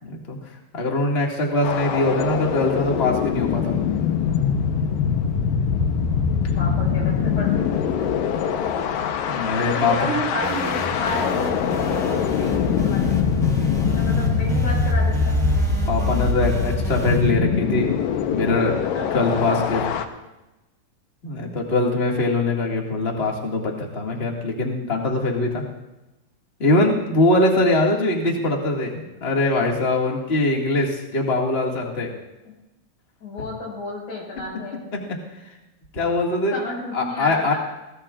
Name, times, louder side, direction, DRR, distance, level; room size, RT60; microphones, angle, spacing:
voice 1, 0.0-0.4 0.7-3.8 9.3-9.9 13.5-13.9 15.9-17.9 18.3-18.8 19.1-19.9 21.2-25.6 26.6-32.1 34.9-35.2 35.9-36.6 36.9-37.5, left 2 dB, 25° left, -1 dB, 1.6 m, -22 dB
sound 1, 1.6-20.0, left 6 dB, 80° left, 2.5 m, -23 dB
voice 2, 6.6-7.8 8.4-8.7 9.0-9.3 9.5-13.2 13.9-15.4 18.6-19.1 33.2-34.8 36.5-37.6, left 1 dB, 60° left, -2 dB, 7.0 m, -31 dB
sound 2, 10.4-17.3, right 4 dB, 10° right, 3.3 m, -32 dB
22.0 x 19.0 x 2.5 m, 1.0 s
omnidirectional pair, 4.0 m